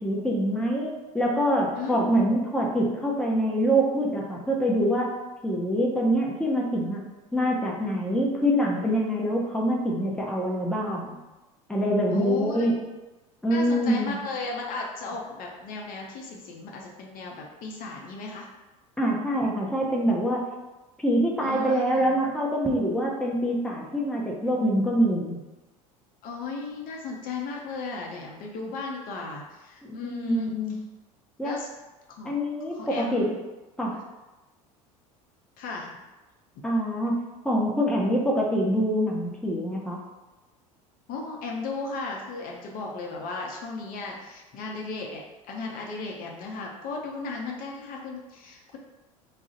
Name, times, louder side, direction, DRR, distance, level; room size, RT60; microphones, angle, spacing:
voice 1, 0.0-5.1 5.4-7.0 7.3-11.1 11.7-12.7 13.4-14.1 19.0-20.4 21.0-25.4 29.8-30.7 31.4-31.5 32.3-33.3 33.8-33.9 36.6-37.1 37.4-40.0, equal, 5° left, -2 dB, 0.6 m, -25 dB
voice 2, 1.8-2.3 12.1-13.0 13.5-18.5 21.4-22.1 26.2-30.8 31.4-31.7 32.1-32.3 32.7-33.3 35.6-36.0 41.1-45.2 45.5-48.8, left 3 dB, 50° left, -1 dB, 0.6 m, -35 dB
2.4 x 2.0 x 3.8 m, 1.1 s
hypercardioid pair, 75°, 18 cm